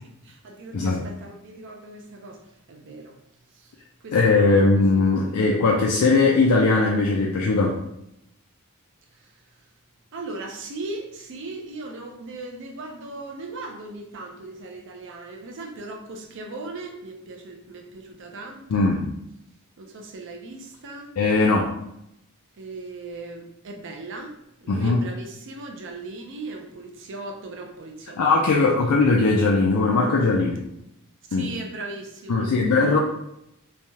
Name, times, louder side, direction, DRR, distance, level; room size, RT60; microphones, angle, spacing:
voice 1, 0.2-3.2 3.5-4.7 5.2-5.4 9.1-9.7 10.1-18.9 19.8-21.2 22.6-28.4 31.3-33.0, right 2 dB, 60° right, 3 dB, 0.5 m, -38 dB
voice 2, 4.1-7.8 18.7-19.1 21.2-21.7 24.7-25.0 28.2-30.6 31.3-31.5 32.3-33.0, left 3 dB, 85° left, -2 dB, 0.4 m, -19 dB
3.2 x 2.2 x 2.8 m, 0.80 s
head